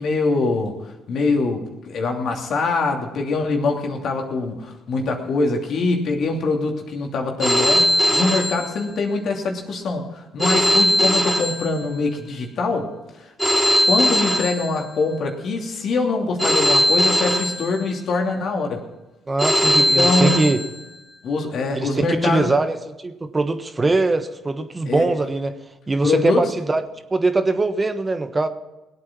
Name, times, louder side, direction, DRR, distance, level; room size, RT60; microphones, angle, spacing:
voice 1, 0.0-12.9 13.2-13.3 13.9-18.8 19.7-20.5 21.2-22.5 24.8-25.1 26.0-26.5, left 3 dB, 60° left, 2 dB, 2.8 m, -23 dB
Telephone, 7.4-9.3 10.4-12.3 13.4-15.3 16.4-18.3 19.4-21.3, equal, ahead, 3.8 m, -20 dB
voice 2, 19.3-20.6 21.7-25.5 25.9-26.8 27.1-28.5, right 3 dB, 25° right, 8 dB, 1.3 m, -22 dB
20.0 x 8.6 x 6.1 m, 1.0 s
hypercardioid pair, 55°, 0 cm